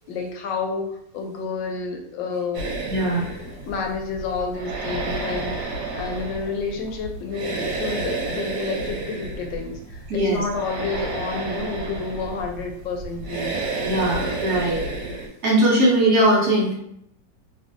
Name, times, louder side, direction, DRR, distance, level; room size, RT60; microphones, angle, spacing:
voice 1, 0.1-2.7 3.7-13.6, left 4 dB, 80° left, 3 dB, 1.3 m, -30 dB
sound 1, 2.5-15.3, right 3 dB, 85° right, 1.3 m, -31 dB
voice 2, 2.9-3.3 10.1-10.4 13.8-14.8 15.4-16.7, right 1 dB, 60° right, -4 dB, 1.0 m, -20 dB
3.0 x 2.6 x 2.5 m, 0.73 s
omnidirectional pair, 2.0 m